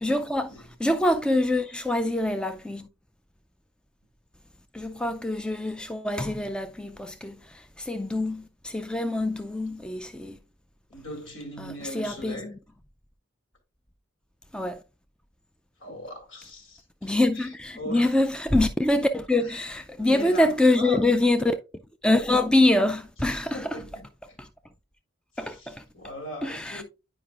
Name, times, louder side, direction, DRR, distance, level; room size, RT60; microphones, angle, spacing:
voice 1, 0.0-2.9 4.7-10.4 11.6-12.4 14.5-14.8 17.0-21.5 22.0-23.8 24.4-24.5 25.4-25.8 26.4-26.8, left 1 dB, 5° left, 0.3 m, -25 dB
voice 2, 10.9-12.5 15.8-18.1 19.4-21.3 23.4-24.1 25.3-26.8, left 1 dB, 70° left, 2.1 m, -39 dB
9.2 x 5.0 x 2.4 m
head